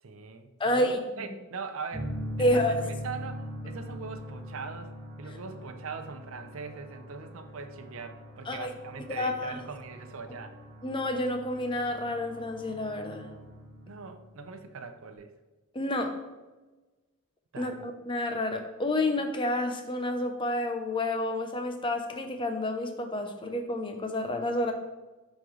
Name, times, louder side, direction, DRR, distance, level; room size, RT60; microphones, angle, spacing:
voice 1, 0.0-10.6 13.9-15.3 17.5-17.8, right 5 dB, 60° right, 8 dB, 0.6 m, -41 dB
voice 2, 0.6-1.3 2.4-2.9 8.5-8.7 9.1-9.6 10.8-13.3 15.7-16.2 17.6-24.7, left 1 dB, 20° left, 5 dB, 0.6 m, -29 dB
sound 1, 1.9-14.6, equal, 30° right, 1.7 m, -42 dB
11.5 x 3.9 x 3.2 m, 1.2 s
head